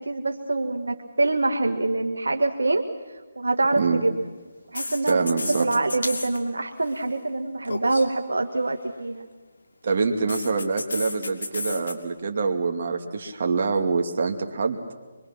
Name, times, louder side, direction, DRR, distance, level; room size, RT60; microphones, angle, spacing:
voice 1, 0.0-2.8 3.3-4.1 4.7-9.2, right 2 dB, 85° right, 5 dB, 1.7 m, -25 dB
sound 1, 3.6-3.8 4.7-6.4 6.7-7.0 7.6-8.1 10.3-11.9, left 2 dB, 75° left, 2.7 m, -32 dB
voice 2, 5.1-5.7 9.8-14.8, right 4 dB, 55° right, 4 dB, 2.5 m, -25 dB
24.5 x 24.0 x 6.0 m, 1.3 s
figure-of-eight pair, 155°, 0 cm